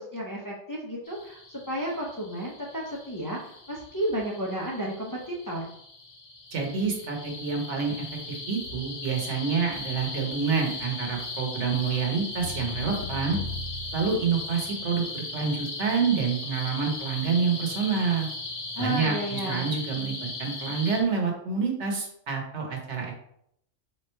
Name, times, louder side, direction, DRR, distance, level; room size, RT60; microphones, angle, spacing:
voice 1, 0.0-5.6 18.8-19.7, right 1 dB, 25° left, -2 dB, 0.5 m, -32 dB
sound 1, 1.1-21.0, left 2 dB, 55° left, 1.0 m, -38 dB
voice 2, 6.5-13.4 13.9-18.3 18.8-23.1, right 5 dB, 70° right, 1 dB, 1.3 m, -28 dB
sound 2, 12.4-14.9, left 3 dB, 85° left, 1.0 m, -37 dB
3.7 x 3.1 x 4.3 m, 0.72 s
omnidirectional pair, 1.3 m